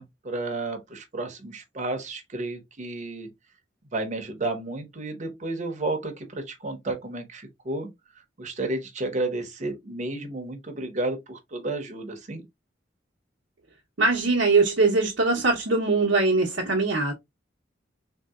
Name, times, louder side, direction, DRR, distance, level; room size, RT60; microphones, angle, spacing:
voice 1, 0.0-3.3 3.9-7.9 8.4-12.4, right 2 dB, 40° right, 0.8 m, -32 dB
voice 2, 14.0-17.1, right 3 dB, 75° right, 0.8 m, -22 dB
3.6 x 2.7 x 2.3 m
head